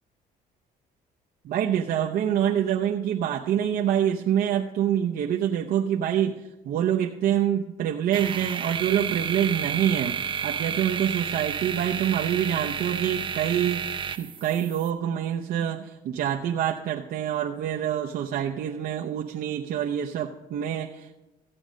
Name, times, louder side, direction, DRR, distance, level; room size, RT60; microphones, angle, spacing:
voice 1, 1.4-21.2, right 10 dB, 65° right, 0 dB, 0.8 m, -26 dB
sound 1, 8.1-14.9, right 7 dB, 30° right, 0.7 m, -31 dB
15.0 x 8.6 x 5.2 m, 0.98 s
cardioid pair, 110°, 17 cm